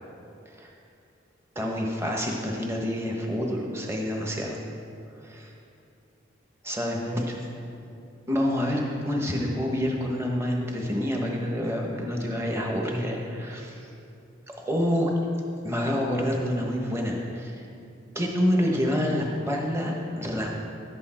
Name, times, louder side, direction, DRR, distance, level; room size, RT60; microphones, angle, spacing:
voice 1, 1.5-4.6 5.2-5.5 6.6-7.4 8.3-13.9 14.7-15.1 15.6-17.6 18.1-20.5, equal, 15° right, 0 dB, 1.1 m, -27 dB
11.5 x 8.4 x 4.4 m, 2.6 s
head